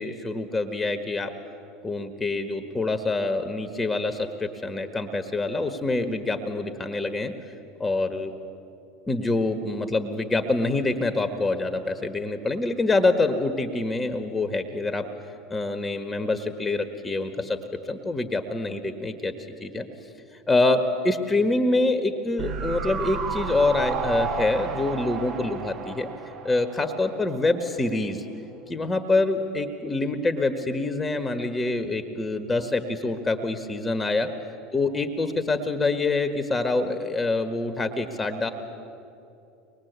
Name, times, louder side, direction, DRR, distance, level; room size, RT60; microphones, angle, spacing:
voice 1, 0.0-1.3 1.8-7.3 7.8-8.3 9.1-15.1 15.5-17.6 17.9-19.3 19.6-19.9 20.5-26.1 26.4-28.2 28.7-34.3 34.7-38.5, left 2 dB, 15° left, 6 dB, 1.6 m, -26 dB
sound 1, 22.4-27.6 27.9-28.0, right 5 dB, 45° right, 1.6 m, -32 dB
23.5 x 21.0 x 8.2 m, 2.8 s
hypercardioid pair, 85°, 0 cm